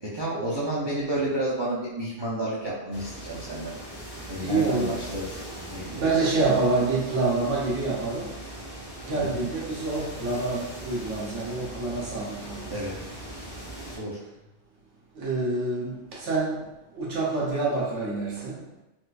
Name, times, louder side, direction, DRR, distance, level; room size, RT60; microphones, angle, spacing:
voice 1, 0.0-3.7 4.3-6.1 9.1-9.5 12.7-12.9 14.0-14.2, right 1 dB, 40° right, -8 dB, 0.4 m, -31 dB
sound 1, 2.9-14.0, right 1 dB, 70° left, 1.3 m, -40 dB
voice 2, 4.4-5.0 5.9-8.3 9.0-12.7 15.2-16.6 17.0-18.6, right 3 dB, 80° right, -4 dB, 1.1 m, -27 dB
4.2 x 2.2 x 2.5 m, 0.98 s
omnidirectional pair, 1.2 m